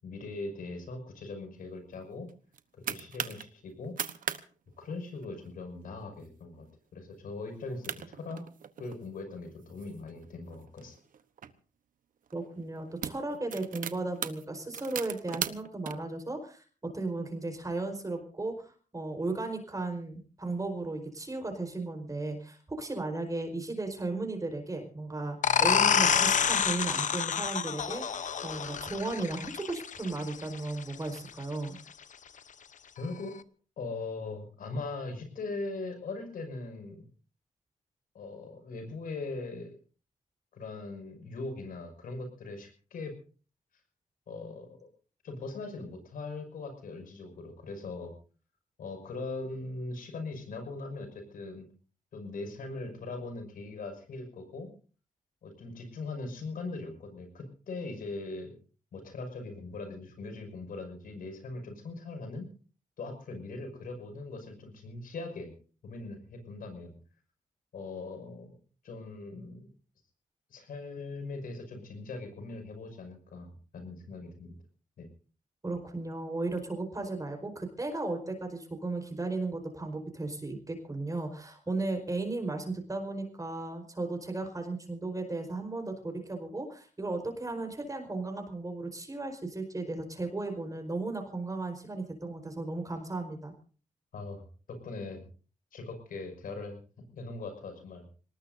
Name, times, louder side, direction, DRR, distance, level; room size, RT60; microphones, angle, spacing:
voice 1, 0.0-2.3 2.7-4.0 4.8-6.7 6.9-8.4 8.8-11.0 33.0-33.3 33.8-37.0 38.1-39.7 40.5-43.1 44.3-44.9 45.2-48.1 48.8-51.7 52.1-54.7 55.4-58.5 58.9-62.5 63.0-65.5 65.8-67.0 67.7-68.6 68.8-69.7 70.5-74.5 75.0-75.1 94.1-94.4 94.7-95.3 95.7-96.8 97.1-98.0, left 3 dB, 90° left, 5 dB, 6.1 m, -40 dB
sound 1, 2.3-3.4 3.8-4.4 4.7-4.8 5.1-5.5 6.0-6.3 6.7-6.8 7.5-7.6 7.8-9.0 9.6-11.5 12.3-12.4 12.8-15.9, right 8 dB, 75° right, 1.1 m, -38 dB
voice 2, 12.3-16.6 16.9-28.0 28.4-31.8 75.6-93.5, right 2 dB, 25° right, 4 dB, 4.8 m, -35 dB
sound 2, 25.4-30.8, left 7 dB, 65° left, 0.9 m, -28 dB
25.5 x 19.5 x 2.7 m, 0.41 s
cardioid pair, 95°, 14 cm